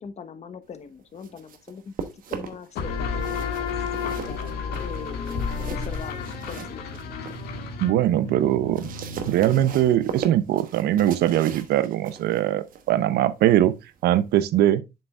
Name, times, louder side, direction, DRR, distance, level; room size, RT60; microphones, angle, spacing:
voice 1, 0.0-1.9 2.3-3.0 3.3-3.7 4.8-7.1, left 6 dB, 40° left, 1.0 m, -41 dB
sound 1, 1.0-2.8 3.1-7.5 7.9-14.5, right 7 dB, 55° right, 1.1 m, -39 dB
sound 2, 2.8-10.1, left 5 dB, 70° left, 1.7 m, -32 dB
voice 2, 7.8-8.9 9.3-13.8 14.0-14.8, right 12 dB, 75° right, 0.7 m, -21 dB
7.7 x 6.5 x 2.3 m
cardioid pair, 110°, 17 cm